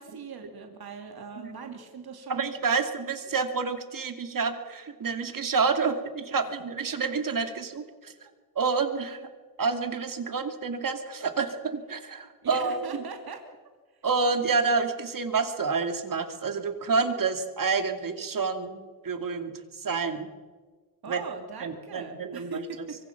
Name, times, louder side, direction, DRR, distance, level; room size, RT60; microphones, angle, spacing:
voice 1, 0.0-2.5 12.4-13.4 21.0-23.0, right 4 dB, 75° right, 4 dB, 2.9 m, -40 dB
voice 2, 2.3-8.1 8.6-9.3 9.6-13.0 14.0-20.3 21.1-21.2 21.6-22.6, right 4 dB, 60° right, 7 dB, 2.6 m, -28 dB
25.0 x 24.5 x 6.0 m, 1.4 s
wide cardioid pair, 115°, 37 cm